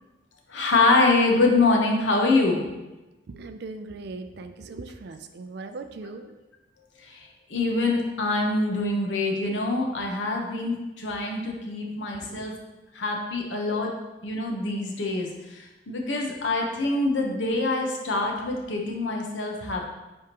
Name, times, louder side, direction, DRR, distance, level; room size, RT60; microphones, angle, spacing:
voice 1, 0.5-2.7 7.1-12.5 12.9-13.9 14.2-19.9, left 3 dB, 80° left, 1 dB, 1.0 m, -25 dB
voice 2, 3.3-6.2 12.2-12.5, right 3 dB, 60° right, 8 dB, 0.4 m, -39 dB
9.5 x 3.5 x 2.9 m, 1.1 s
head